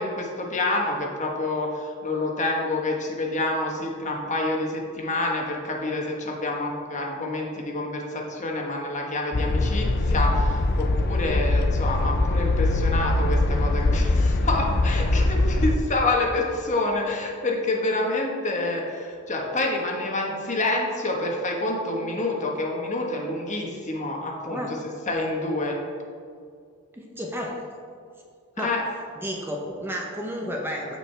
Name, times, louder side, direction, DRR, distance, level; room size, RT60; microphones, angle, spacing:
voice 1, 0.0-25.8 28.6-28.8, left 2 dB, 35° left, 0 dB, 1.3 m, -27 dB
sound 1, 9.3-15.8, left 2 dB, 50° left, 0.5 m, -22 dB
voice 2, 24.5-24.8 26.9-27.7 28.6-28.7 29.2-31.0, equal, 10° right, -1 dB, 0.9 m, -32 dB
14.5 x 5.0 x 3.4 m, 2.2 s
head